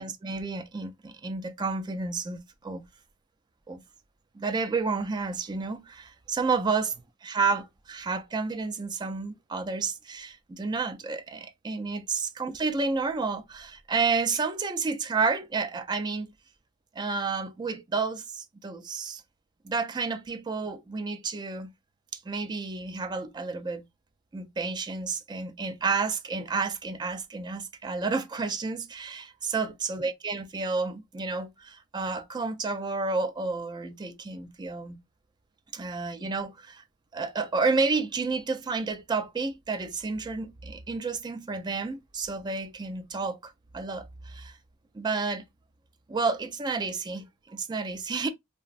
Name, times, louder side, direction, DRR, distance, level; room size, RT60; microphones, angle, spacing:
voice 1, 0.0-2.8 3.7-3.8 4.3-16.3 17.0-19.2 19.6-21.7 22.3-23.8 24.3-35.0 35.7-36.8 37.1-44.6 44.9-45.4 46.1-48.3, right 4 dB, 20° right, 0.3 m, -30 dB
3.1 x 2.0 x 2.4 m
head